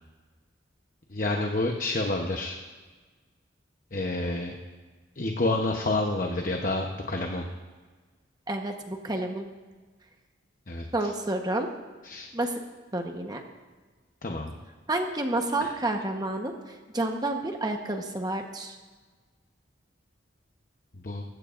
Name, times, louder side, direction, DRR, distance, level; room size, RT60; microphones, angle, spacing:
voice 1, 1.1-2.6 3.9-4.5 5.1-7.5 10.7-11.1 12.0-12.3 14.2-14.5 15.6-15.8 20.9-21.2, left 2 dB, 45° left, 2 dB, 0.9 m, -29 dB
voice 2, 8.5-9.5 10.9-11.7 12.3-12.5 12.9-13.4 14.9-16.5 16.9-18.8, right 2 dB, 20° right, 4 dB, 1.1 m, -29 dB
20.0 x 15.5 x 2.6 m, 1.4 s
head